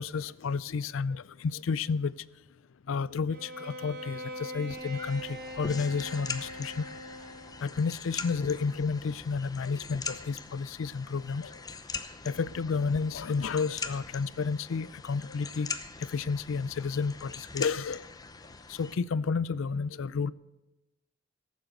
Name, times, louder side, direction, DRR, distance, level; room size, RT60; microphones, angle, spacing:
voice 1, 0.0-2.1 2.9-6.9 7.6-11.5 12.2-15.7 16.1-18.0 18.7-20.3, left 5 dB, 85° left, 20 dB, 0.4 m, -31 dB
Bowed string instrument, 3.3-7.7, equal, 50° right, 1.4 m, -42 dB
sound 1, 4.7-18.9, left 4 dB, 20° left, 0.7 m, -42 dB
15.0 x 7.4 x 7.8 m, 1.0 s
head